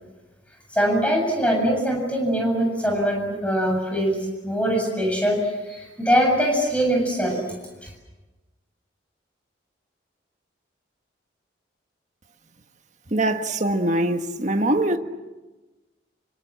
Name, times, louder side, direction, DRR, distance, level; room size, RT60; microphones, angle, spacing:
voice 1, 0.7-4.2 4.4-7.5 7.8-7.9, equal, 5° left, 7.5 m, -22 dB
voice 2, 13.1-15.0, right 1 dB, 40° right, 1.6 m, -22 dB
28.0 x 24.5 x 7.6 m
head